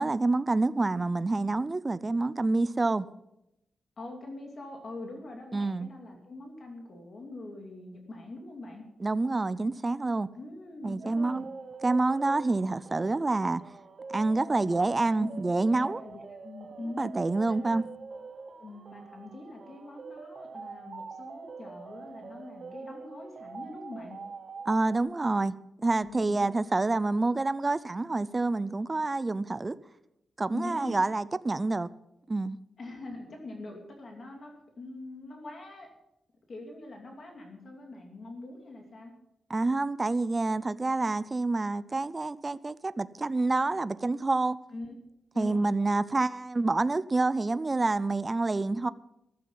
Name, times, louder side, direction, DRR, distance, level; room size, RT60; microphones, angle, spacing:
voice 1, 0.0-3.1 5.5-5.9 9.0-10.3 10.8-11.5 11.8-13.6 14.1-16.0 17.0-17.8 24.7-29.8 30.4-31.9 32.3-32.6 39.5-44.6 45.4-48.9, right 3 dB, 20° right, 0.4 m, -27 dB
voice 2, 4.0-8.8 10.3-11.5 14.5-14.8 15.2-15.4 15.7-17.1 17.4-17.9 18.6-24.2 26.0-26.5 30.5-31.0 32.8-35.9 36.5-39.1 44.7-45.0 45.3-45.7, left 2 dB, 40° left, 2.6 m, -43 dB
sound 1, 11.0-25.0, right 4 dB, 40° right, 1.0 m, -45 dB
14.5 x 12.5 x 5.6 m
wide cardioid pair, 170°, 0 cm